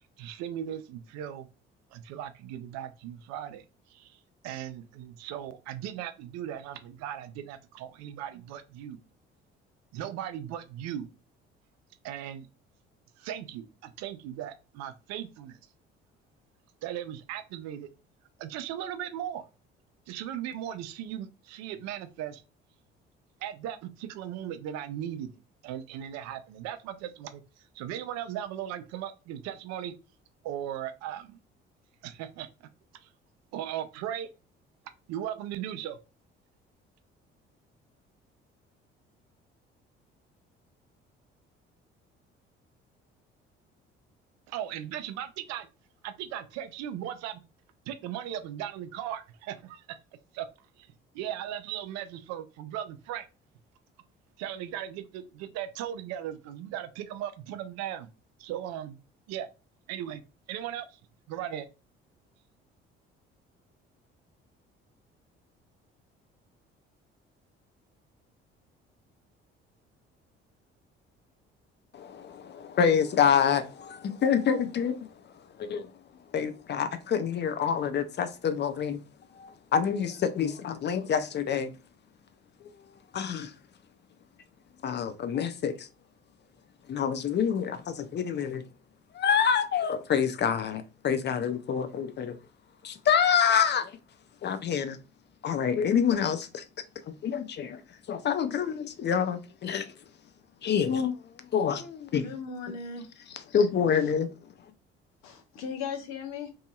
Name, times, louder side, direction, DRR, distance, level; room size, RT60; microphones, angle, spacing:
voice 1, 0.2-1.5 1.9-9.0 9.9-11.1 12.0-12.5 13.2-15.6 16.8-17.9 18.4-19.4 20.1-22.4 23.4-25.3 25.6-29.9 30.4-31.4 32.0-32.5 33.0-33.1 33.5-34.3 35.1-36.0 44.5-45.7 46.0-47.4 47.9-50.0 50.3-50.5 50.8-53.3 54.4-58.1 58.4-59.0 59.3-59.5 59.9-60.2 60.5-61.0 61.3-61.7, right 10 dB, 60° right, 0.5 m, -37 dB
voice 2, 71.9-75.0 75.6-75.9 76.3-79.0 79.3-81.7 83.1-83.5 84.8-85.9 86.9-88.6 89.1-92.4 92.8-93.9 94.4-95.0 95.4-96.6 97.2-97.8 98.1-99.9 100.6-101.2 101.5-102.2 103.5-104.3, left 7 dB, 35° left, 0.5 m, -27 dB
voice 3, 102.1-103.7 103.9-104.1 105.2-106.5, left 6 dB, 60° left, 0.8 m, -38 dB
2.7 x 2.6 x 2.4 m
hypercardioid pair, 50°, 30 cm